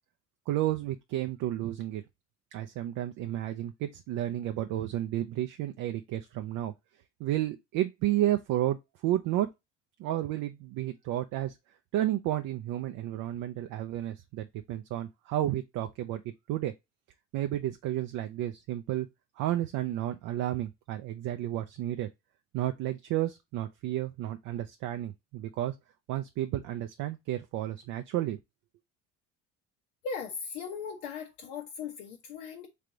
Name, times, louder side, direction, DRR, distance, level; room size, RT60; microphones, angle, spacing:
voice 1, 0.5-2.0 2.5-6.7 7.2-8.8 9.0-9.5 10.0-11.5 11.9-16.7 17.3-19.1 19.4-22.1 22.5-25.7 26.1-28.4, right 13 dB, 55° right, 0.6 m, -32 dB
voice 2, 30.0-32.7, left 5 dB, 75° left, 1.0 m, -38 dB
3.4 x 3.3 x 3.7 m
hypercardioid pair, 70°, 36 cm